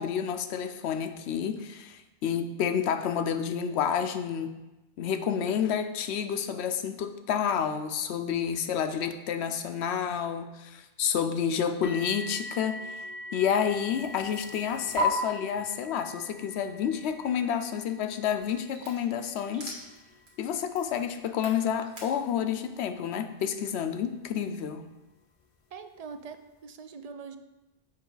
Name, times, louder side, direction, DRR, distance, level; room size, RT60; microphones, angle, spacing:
voice 1, 0.0-4.5 5.0-13.0 13.3-19.7 20.4-24.8, left 8 dB, 85° left, 9 dB, 0.9 m, -29 dB
sound 1, 11.8-24.7 25.5-25.6 26.2-26.3, left 1 dB, 40° left, 0.5 m, -46 dB
sound 2, 13.6-15.0 18.4-22.1, right 4 dB, 75° right, 1.9 m, -40 dB
voice 2, 25.7-27.4, right 5 dB, 55° right, 9 dB, 0.4 m, -43 dB
7.5 x 5.4 x 3.9 m, 1.1 s
omnidirectional pair, 1.1 m